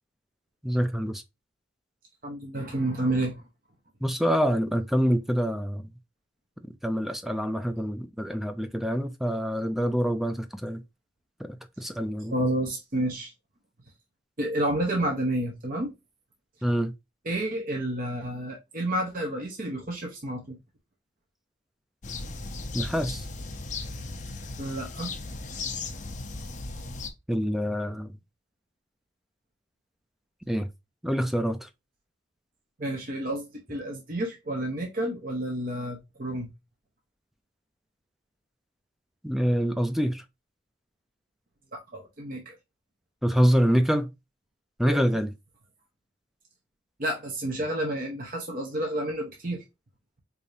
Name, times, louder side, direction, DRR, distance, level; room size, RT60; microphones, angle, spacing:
voice 1, 0.6-1.2 4.0-5.8 6.8-10.8 11.4-11.5 11.8-12.3 16.6-16.9 22.7-23.2 27.3-28.1 30.5-30.7 31.0-31.7 39.2-40.2 43.2-44.1 44.8-45.3, equal, ahead, 0.3 m, -26 dB
voice 2, 2.2-3.4 12.3-13.3 14.4-15.9 17.2-20.6 24.6-25.1 32.8-36.5 41.7-42.5 44.8-45.1 47.0-49.6, right 1 dB, 45° right, 0.8 m, -30 dB
sound 1, 22.0-27.1, left 3 dB, 40° left, 0.6 m, -36 dB
4.8 x 2.7 x 2.6 m
head